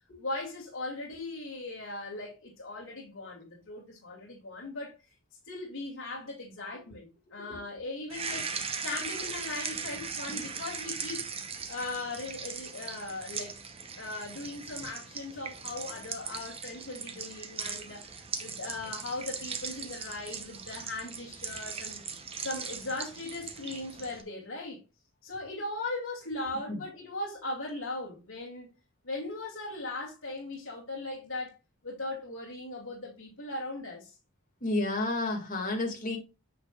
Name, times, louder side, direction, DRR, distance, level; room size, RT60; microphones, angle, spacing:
voice 1, 0.2-5.0 5.5-8.5 8.8-11.3 11.7-13.6 14.0-22.0 22.4-24.8 25.2-28.7 29.0-31.6 31.8-34.1, left 2 dB, 65° left, 2.4 m, -38 dB
sound 1, 8.1-24.2, right 5 dB, 25° right, 0.8 m, -39 dB
voice 2, 34.6-36.2, left 2 dB, 35° left, 2.1 m, -31 dB
9.1 x 6.0 x 2.4 m
head